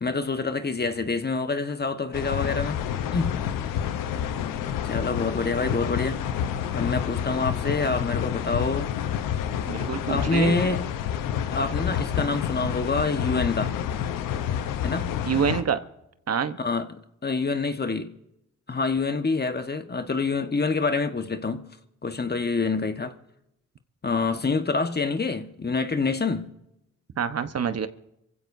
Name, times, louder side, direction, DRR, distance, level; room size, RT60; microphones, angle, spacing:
voice 1, 0.0-2.8 3.1-3.4 4.8-6.2 6.7-8.9 10.1-10.9 11.5-13.8 14.8-15.1 16.6-18.1 18.7-21.7 22.0-23.1 24.0-26.5, left 4 dB, 30° left, 1.4 m, -26 dB
sound 1, 2.1-15.6, left 9 dB, 85° left, 1.0 m, -29 dB
voice 2, 9.7-10.7 15.3-15.8 16.3-16.6 27.2-27.9, right 7 dB, 50° right, 1.1 m, -26 dB
26.0 x 15.5 x 2.7 m
supercardioid pair, 55°, 32 cm